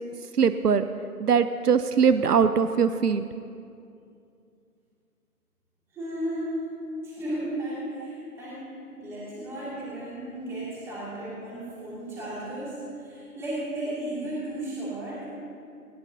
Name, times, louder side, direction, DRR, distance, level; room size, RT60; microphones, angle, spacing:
voice 1, 0.4-0.8 1.2-3.2, right 6 dB, 80° right, 11 dB, 0.7 m, -21 dB
voice 2, 5.9-6.6 7.0-15.3, right 1 dB, 5° right, -8 dB, 2.3 m, -34 dB
19.0 x 17.5 x 2.8 m, 2.5 s
figure-of-eight pair, 155°, 46 cm